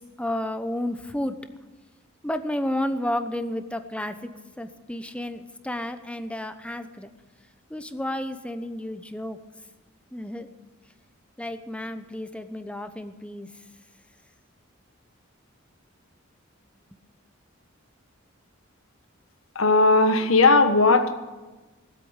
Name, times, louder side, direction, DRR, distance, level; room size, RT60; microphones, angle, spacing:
voice 1, 0.2-1.3 2.2-4.3 4.6-7.1 7.7-9.4 10.1-10.5 11.4-13.5, left 1 dB, 5° left, 9 dB, 0.9 m, -31 dB
voice 2, 19.5-21.1, left 3 dB, 80° left, 8 dB, 1.4 m, -17 dB
18.5 x 8.3 x 9.0 m, 1.2 s
head